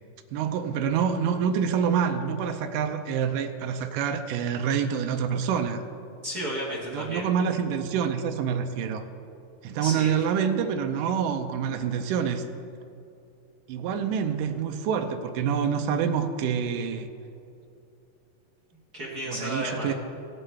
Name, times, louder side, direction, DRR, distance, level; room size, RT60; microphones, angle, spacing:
voice 1, 0.3-5.8 6.9-9.0 9.6-12.5 13.7-17.1 19.3-19.9, right 7 dB, 85° right, 6 dB, 2.2 m, -27 dB
voice 2, 6.2-7.2 9.8-10.1 18.9-19.9, equal, 45° right, -6 dB, 1.3 m, -32 dB
17.5 x 9.3 x 3.4 m, 2.6 s
omnidirectional pair, 4.0 m